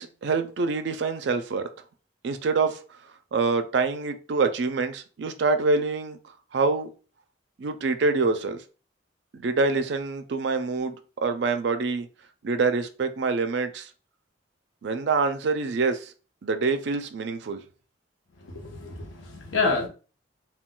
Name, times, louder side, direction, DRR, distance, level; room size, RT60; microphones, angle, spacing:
voice 1, 0.0-1.7 2.2-2.8 3.3-6.2 6.5-6.9 7.6-8.6 9.3-12.1 12.4-13.9 14.8-16.1 16.4-17.6, right 4 dB, 60° right, 0.4 m, -26 dB
voice 2, 18.4-19.9, left 3 dB, 80° left, 0.7 m, -28 dB
2.2 x 2.2 x 3.7 m
head